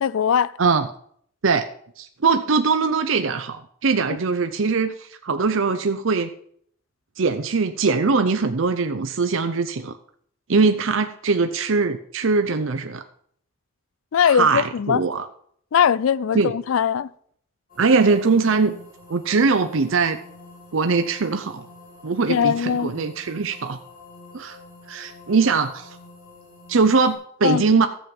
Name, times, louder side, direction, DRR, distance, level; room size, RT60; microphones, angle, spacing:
voice 1, 0.0-0.5 14.1-15.0 15.7-17.1 22.3-22.9 27.4-27.6, left 7 dB, 75° left, 0.4 m, -20 dB
voice 2, 2.0-6.3 7.2-9.9 10.5-13.0 14.3-15.3 16.3-16.5 17.8-18.7 19.1-20.2 20.7-21.7 22.0-23.8 24.3-24.6 24.9-26.0 26.7-27.9, right 4 dB, 70° right, 0.7 m, -21 dB
sound 1, 17.7-27.1, left 2 dB, 45° left, 5.7 m, -46 dB
14.0 x 7.5 x 5.3 m
head